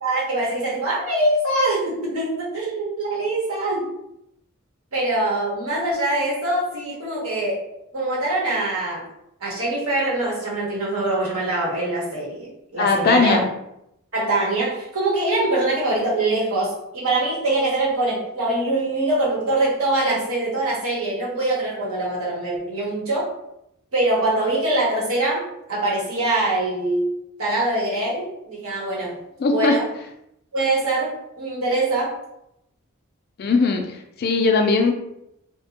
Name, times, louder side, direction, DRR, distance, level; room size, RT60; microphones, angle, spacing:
voice 1, 0.0-3.9 4.9-7.6 7.9-9.0 9.4-13.4 14.1-23.3 23.9-27.1 27.4-29.2 29.4-29.9 30.5-32.2, right 2 dB, 80° right, -5 dB, 1.1 m, -23 dB
voice 2, 12.8-13.5 29.4-29.8 33.4-34.9, left 3 dB, 45° left, 4 dB, 0.3 m, -19 dB
2.7 x 2.2 x 2.7 m, 0.80 s
head